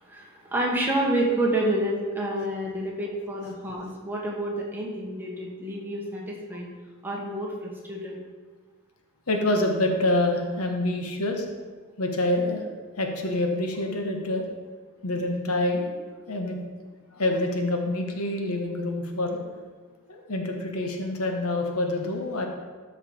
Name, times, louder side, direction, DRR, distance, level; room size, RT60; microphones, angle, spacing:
voice 1, 0.0-6.7 7.0-8.2, right 1 dB, 10° right, -3 dB, 1.5 m, -28 dB
voice 2, 9.3-11.5 12.0-12.6 13.0-14.5 15.0-15.9 16.3-16.6 17.1-19.4 20.1-22.5, left 1 dB, 80° left, 3 dB, 1.3 m, -26 dB
13.0 x 4.9 x 4.5 m, 1.5 s
head